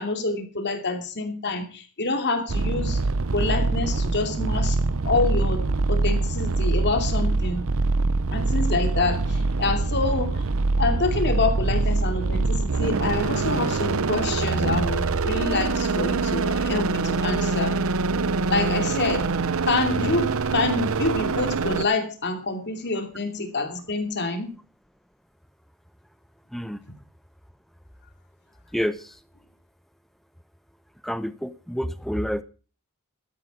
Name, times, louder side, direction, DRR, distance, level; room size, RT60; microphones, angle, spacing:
voice 1, 0.0-3.0 3.3-4.8 5.0-7.7 8.3-10.4 10.8-17.8 18.5-19.3 19.6-24.5, left 3 dB, 50° left, 6 dB, 2.6 m, -27 dB
sound 1, 2.5-21.8, right 3 dB, 65° right, 0.7 m, -24 dB
voice 2, 26.5-26.8 28.7-29.2 31.0-32.4, equal, ahead, 13 dB, 0.8 m, -28 dB
12.5 x 10.5 x 5.1 m, 0.36 s
head